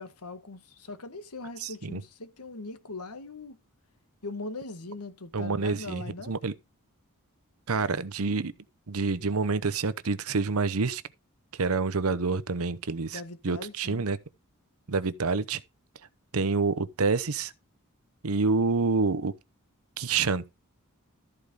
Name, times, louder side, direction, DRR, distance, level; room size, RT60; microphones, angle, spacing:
voice 1, 0.0-3.6 4.2-6.3 13.1-14.0, left 3 dB, 85° left, 1.5 m, -40 dB
voice 2, 1.6-2.0 5.3-6.5 7.7-8.5 8.9-11.0 11.6-14.2 14.9-15.6 16.3-17.5 18.2-19.3 20.0-20.4, right 4 dB, 70° right, 0.8 m, -27 dB
13.5 x 4.9 x 5.2 m
head